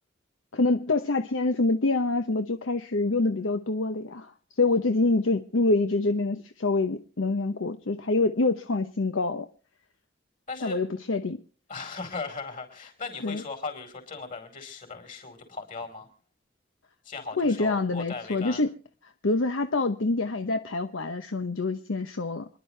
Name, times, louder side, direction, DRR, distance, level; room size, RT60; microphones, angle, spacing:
voice 1, 0.5-4.3 4.6-9.5 10.6-11.4 13.2-13.4 17.4-18.8 19.2-22.5, left 3 dB, 70° left, 8 dB, 0.8 m, -26 dB
voice 2, 10.5-10.8 11.7-16.1 17.0-18.6, left 4 dB, 40° left, 6 dB, 4.6 m, -38 dB
27.5 x 11.0 x 3.3 m, 0.39 s
head